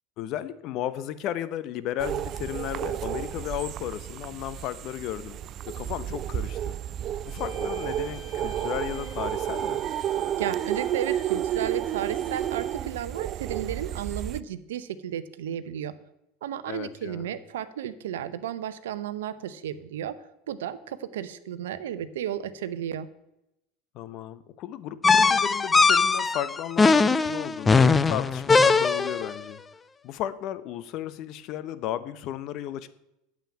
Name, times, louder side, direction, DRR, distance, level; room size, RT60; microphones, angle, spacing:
voice 1, 0.2-5.4 5.7-6.8 7.2-9.8 16.7-17.3 23.9-29.6 30.0-32.9, left 11 dB, 55° left, 14 dB, 0.9 m, -34 dB
sound 1, 2.0-14.4, right 11 dB, 45° right, 0.4 m, -31 dB
sound 2, 7.2-13.0, left 1 dB, ahead, 5.0 m, -49 dB
voice 2, 10.4-15.9 16.4-20.1 20.5-23.1, right 10 dB, 75° right, 12 dB, 0.7 m, -33 dB
sound 3, 25.0-29.3, left 4 dB, 20° left, 0.6 m, -20 dB
9.1 x 7.6 x 8.7 m, 0.86 s
hypercardioid pair, 80°, 0 cm